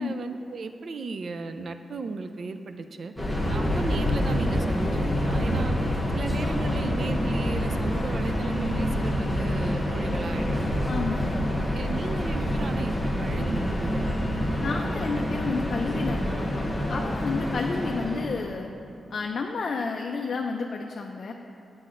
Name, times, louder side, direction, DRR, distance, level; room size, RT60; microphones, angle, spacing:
voice 1, 0.0-3.1 3.5-5.8 6.1-10.9 11.7-14.2, right 4 dB, 50° right, 8 dB, 0.3 m, -35 dB
Subway metro underground, 3.2-18.5, equal, 5° left, 0.8 m, -27 dB
voice 2, 10.9-11.4 14.6-16.6 16.9-18.7 19.1-21.3, left 4 dB, 50° left, 2 dB, 0.3 m, -31 dB
10.0 x 7.5 x 2.5 m, 2.8 s
wide cardioid pair, 145°, 0 cm